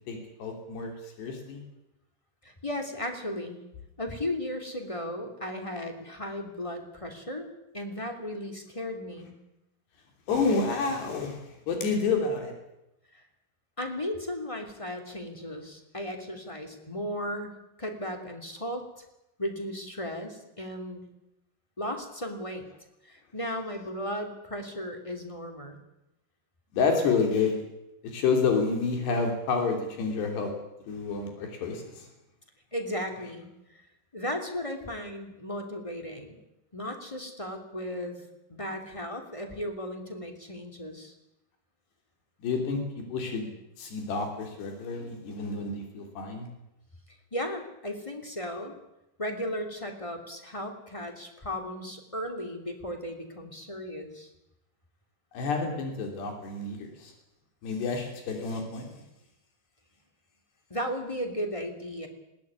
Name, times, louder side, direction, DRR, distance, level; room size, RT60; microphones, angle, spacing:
voice 1, 0.1-1.6 10.3-12.5 26.7-27.6 28.0-30.5 30.9-32.1 42.4-42.8 43.1-46.5 55.3-57.1 57.6-59.0, left 4 dB, 85° left, 3 dB, 5.4 m, -29 dB
voice 2, 2.4-3.6 4.0-7.5 7.7-9.4 13.1-13.2 13.8-19.0 19.4-21.0 21.8-22.7 23.0-25.8 32.7-33.8 34.1-36.4 36.7-38.2 38.5-41.1 47.3-48.7 49.2-54.3 60.7-62.1, left 1 dB, 10° left, 4 dB, 2.1 m, -35 dB
20.5 x 18.0 x 9.7 m, 0.89 s
omnidirectional pair, 4.7 m